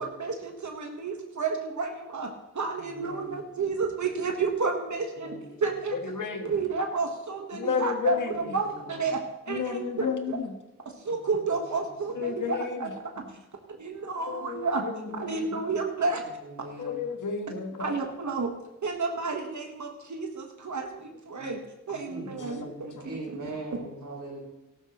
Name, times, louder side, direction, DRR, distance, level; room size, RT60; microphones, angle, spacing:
voice 1, 0.0-6.0 6.4-9.2 9.5-10.4 11.0-12.9 13.2-13.3 13.8-14.8 15.1-16.2 17.8-18.5 18.8-21.6 21.9-23.4 23.7-23.8, right 4 dB, 60° right, 3 dB, 1.3 m, -31 dB
voice 2, 2.9-3.4 5.2-5.6 8.4-9.0 16.4-17.0 22.1-24.4, right 2 dB, 80° right, -8 dB, 4.0 m, -41 dB
voice 3, 5.9-6.5 7.5-8.4 9.5-10.5 12.1-12.9 14.3-15.6 16.8-18.0 21.4-21.6 21.9-22.5 23.0-23.1, left 6 dB, 65° left, 5 dB, 1.5 m, -32 dB
14.5 x 12.0 x 3.0 m, 0.96 s
cardioid pair, 65°, 32 cm